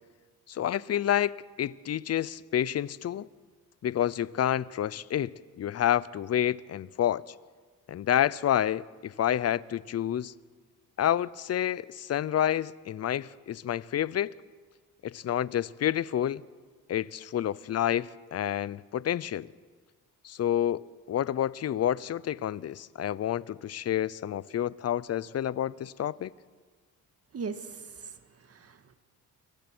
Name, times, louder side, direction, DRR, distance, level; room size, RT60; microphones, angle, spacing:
voice 1, 0.5-3.3 3.8-7.2 7.9-10.3 11.0-14.3 15.0-16.4 16.9-19.5 20.2-26.3, left 11 dB, 45° left, 0.7 m, -29 dB
voice 2, 27.3-28.9, right 5 dB, 40° right, 1.8 m, -40 dB
29.5 x 23.5 x 6.2 m
cardioid pair, 110°, 37 cm